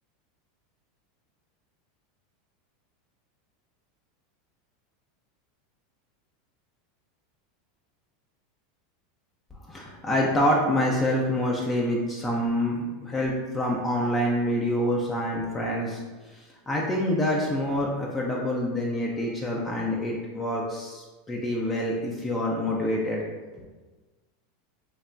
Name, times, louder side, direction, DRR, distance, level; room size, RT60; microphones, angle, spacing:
voice 1, 9.7-16.0 16.3-23.2 23.5-23.6, left 1 dB, 20° left, -2 dB, 0.4 m, -26 dB
3.2 x 2.1 x 2.5 m, 1.3 s
hypercardioid pair, 100°, 0 cm